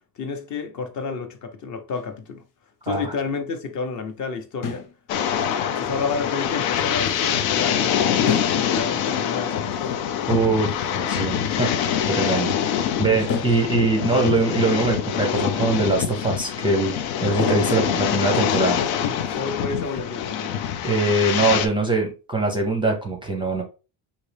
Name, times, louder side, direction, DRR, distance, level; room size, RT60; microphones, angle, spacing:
voice 1, 0.2-2.4 2.8-4.9 5.6-10.0 13.1-13.2 19.0-20.5, left 5 dB, 40° left, 0.7 m, -30 dB
sound 1, 1.9-2.3 4.6-5.1 5.4-5.5 6.4-6.5 7.0-7.4 8.3-8.8 9.1-9.2 9.8-12.9 13.3-15.5 15.8-16.6 16.9-17.1 17.4-20.0, left 5 dB, 60° left, 1.0 m, -36 dB
sound 2, 5.1-21.7, left 9 dB, 85° left, 0.8 m, -24 dB
voice 2, 10.3-11.7 12.1-18.8 20.8-23.6, right 3 dB, 10° right, 0.5 m, -23 dB
5.2 x 2.8 x 3.3 m
cardioid pair, 160°, 46 cm